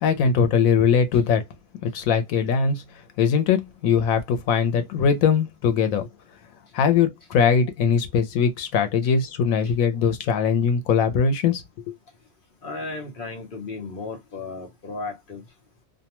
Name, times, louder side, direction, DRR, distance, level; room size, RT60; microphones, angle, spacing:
voice 1, 0.0-1.4 1.8-2.8 3.2-6.1 6.7-12.0, left 6 dB, 90° left, 1.0 m, -21 dB
voice 2, 12.6-15.4, left 3 dB, 50° left, 0.8 m, -35 dB
2.5 x 2.2 x 2.9 m
omnidirectional pair, 1.4 m